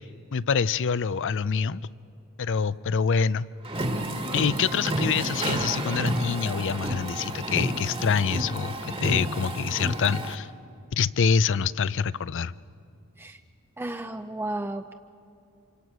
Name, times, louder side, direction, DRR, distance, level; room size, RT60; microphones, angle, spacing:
voice 1, 0.3-1.8 2.4-3.5 4.3-10.5 10.9-12.5, left 6 dB, 60° left, 18 dB, 0.5 m, -26 dB
sound 1, 3.6-10.3, right 1 dB, 25° right, 1.6 m, -30 dB
voice 2, 13.8-14.9, right 2 dB, 10° right, 7 dB, 0.5 m, -33 dB
27.0 x 25.0 x 6.2 m, 2.5 s
head